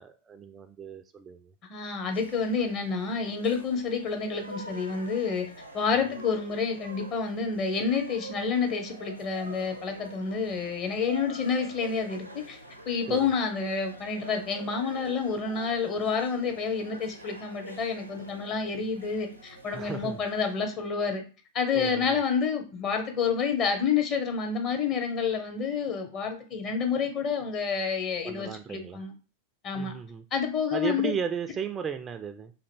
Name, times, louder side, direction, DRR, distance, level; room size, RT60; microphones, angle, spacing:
voice 1, 0.0-1.5 13.1-13.3 19.7-20.2 21.7-22.2 28.2-29.0 29.7-30.2 30.7-32.5, right 7 dB, 20° right, 8 dB, 0.3 m, -35 dB
voice 2, 1.7-5.5 5.7-12.6 12.9-21.2 21.5-29.1 29.6-29.9 30.3-31.1, left 5 dB, 35° left, 4 dB, 0.8 m, -29 dB
sound 1, 2.1-20.9, right 1 dB, 90° right, 0.6 m, -46 dB
2.8 x 2.6 x 4.2 m, 0.36 s
figure-of-eight pair, 90°, 0 cm